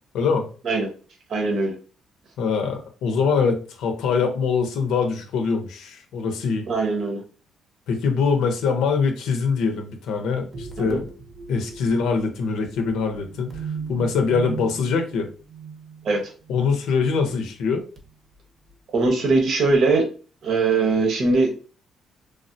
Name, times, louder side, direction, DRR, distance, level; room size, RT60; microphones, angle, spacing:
voice 1, 0.1-0.5 2.4-6.7 7.9-11.1 11.5-13.6 13.9-15.3 16.5-17.8, left 5 dB, 85° left, 5 dB, 0.6 m, -23 dB
voice 2, 1.3-1.7 6.7-7.2 10.8-11.0 16.0-16.3 18.9-20.1 20.4-21.6, right 3 dB, 60° right, 2 dB, 0.9 m, -21 dB
sound 1, 10.5-17.2 17.6-18.1 18.7-18.8, right 5 dB, 35° right, 0.7 m, -38 dB
3.3 x 2.1 x 2.6 m, 0.37 s
cardioid pair, 120°, 0 cm